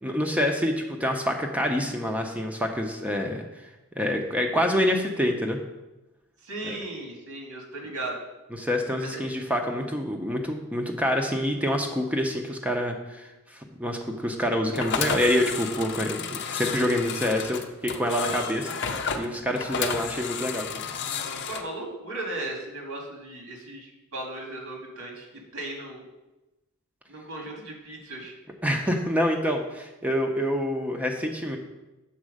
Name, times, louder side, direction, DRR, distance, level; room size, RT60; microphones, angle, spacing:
voice 1, 0.0-3.4 4.0-5.6 6.6-6.8 8.5-20.8 28.6-31.6, equal, 5° right, 3 dB, 0.6 m, -27 dB
voice 2, 6.4-8.2 9.0-9.2 21.5-25.3 25.5-26.0 27.1-28.3, right 2 dB, 70° right, 0 dB, 2.0 m, -36 dB
sound 1, 14.7-21.6, left 6 dB, 55° left, 0.6 m, -32 dB
7.3 x 4.4 x 6.4 m, 1.0 s
head